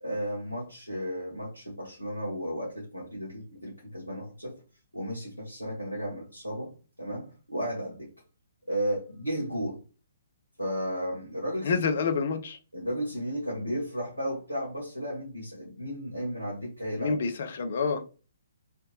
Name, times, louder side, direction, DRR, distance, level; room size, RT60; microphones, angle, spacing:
voice 1, 0.0-4.5 4.9-6.7 7.0-8.1 8.7-9.8 10.6-11.8 12.7-17.1, equal, 90° left, 1.4 m, -34 dB
voice 2, 11.6-12.6 17.0-18.0, left 5 dB, 55° left, 0.6 m, -28 dB
3.3 x 2.8 x 3.1 m
figure-of-eight pair, 130°, 0 cm